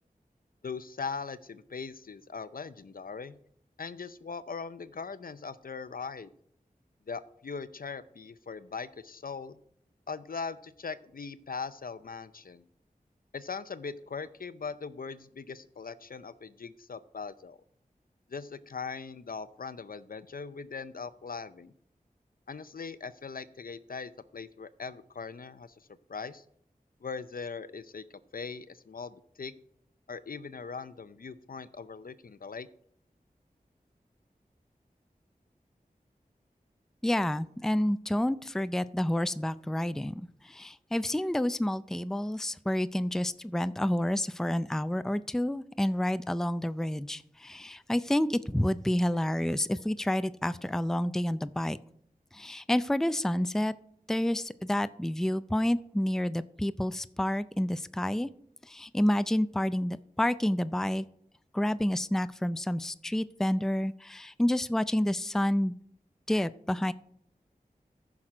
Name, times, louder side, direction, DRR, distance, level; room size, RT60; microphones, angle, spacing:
voice 1, 0.6-3.4 3.8-6.3 7.1-9.6 10.1-12.6 13.3-17.6 18.3-21.7 22.5-26.4 27.0-28.0 28.3-29.5 30.1-32.7, left 5 dB, 70° left, 14 dB, 0.6 m, -40 dB
voice 2, 37.0-40.1 40.4-51.8 52.3-53.7 54.1-58.3 58.6-61.0 61.5-65.7 66.3-66.9, left 1 dB, 5° left, 14 dB, 0.4 m, -29 dB
14.5 x 6.0 x 4.9 m, 0.68 s
wide cardioid pair, 55°, 15 cm